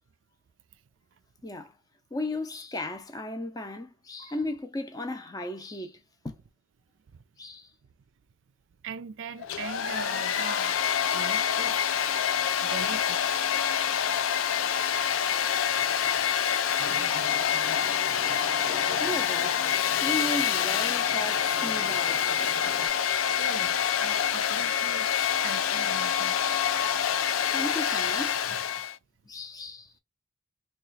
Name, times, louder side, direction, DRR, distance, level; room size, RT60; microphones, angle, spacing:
voice 1, 1.4-1.7 2.1-6.4 7.4-7.7 19.0-19.6 20.0-22.5 27.5-28.6 29.2-29.9, left 1 dB, 20° left, 0.6 m, -36 dB
voice 2, 8.8-10.8 11.1-11.8 12.6-13.2 23.3-25.1 25.4-26.4, right 6 dB, 65° right, 0.4 m, -40 dB
Domestic sounds home sounds, 9.4-29.0, left 9 dB, 85° left, 0.4 m, -26 dB
Musical instrument, 16.8-22.9, equal, 25° right, 0.8 m, -43 dB
3.0 x 2.3 x 4.0 m
head